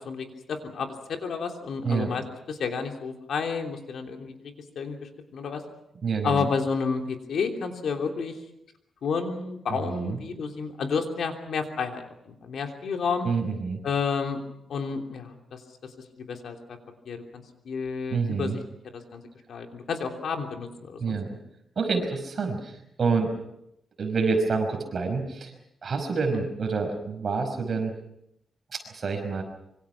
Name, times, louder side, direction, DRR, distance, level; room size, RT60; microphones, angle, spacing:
voice 1, 0.0-5.6 6.2-8.4 9.0-13.3 13.8-14.4 14.7-15.6 16.2-16.8 17.0-18.5 18.9-19.2 19.5-21.4 26.3-26.5, left 5 dB, 70° left, 4 dB, 3.2 m, -31 dB
voice 2, 6.0-6.5 9.9-10.2 13.2-13.8 18.1-18.6 21.0-21.3 21.8-23.3 24.0-25.5 25.8-27.9 28.7-29.4, right 4 dB, 40° right, 4 dB, 5.4 m, -27 dB
26.0 x 24.0 x 6.0 m, 0.78 s
wide cardioid pair, 170°, 0 cm